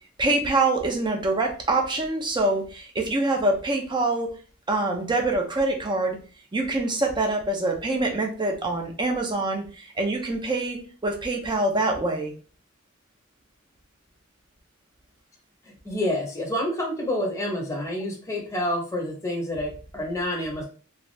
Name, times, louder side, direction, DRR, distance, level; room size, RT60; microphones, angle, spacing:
voice 1, 0.2-4.4 4.7-6.2 6.5-12.3, right 2 dB, 20° right, 2 dB, 0.5 m, -25 dB
voice 2, 15.6-20.6, left 1 dB, 15° left, 0 dB, 0.8 m, -28 dB
2.6 x 2.4 x 3.1 m, 0.38 s
head